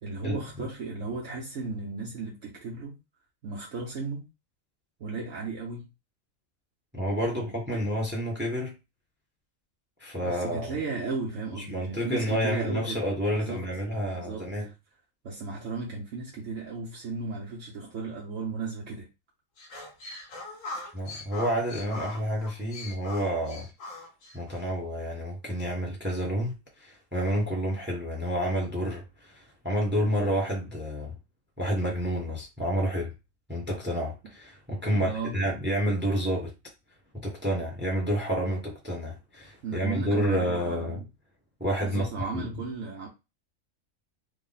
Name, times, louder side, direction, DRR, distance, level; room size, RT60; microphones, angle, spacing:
voice 1, 0.0-3.0 3.4-4.3 5.0-5.9 7.3-7.8 10.2-13.0 13.3-13.6 14.1-14.7 15.2-19.1 34.9-35.4 39.6-41.1 41.8-43.1, right 3 dB, 70° right, 1.2 m, -35 dB
voice 2, 6.9-8.7 10.0-10.8 11.7-14.7 20.9-23.7 24.3-31.2 31.6-33.1 33.5-36.5 37.1-41.0 41.6-42.1 42.3-42.5, equal, 10° right, 0.9 m, -29 dB
sound 1, 19.6-24.6, left 2 dB, 75° left, 1.4 m, -41 dB
3.5 x 2.2 x 3.9 m
omnidirectional pair, 1.4 m